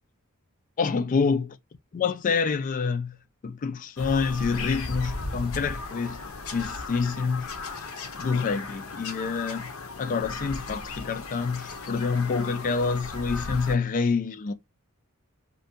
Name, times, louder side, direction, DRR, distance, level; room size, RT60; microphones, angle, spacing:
voice 1, 0.8-1.5 1.9-3.2 3.4-6.2 6.5-7.5 8.2-9.7 10.0-14.5, left 5 dB, 40° left, 0.3 m, -27 dB
Bird vocalization bird call bird song, 4.0-13.8, left 3 dB, 75° left, 0.6 m, -36 dB
2.6 x 2.2 x 2.5 m
head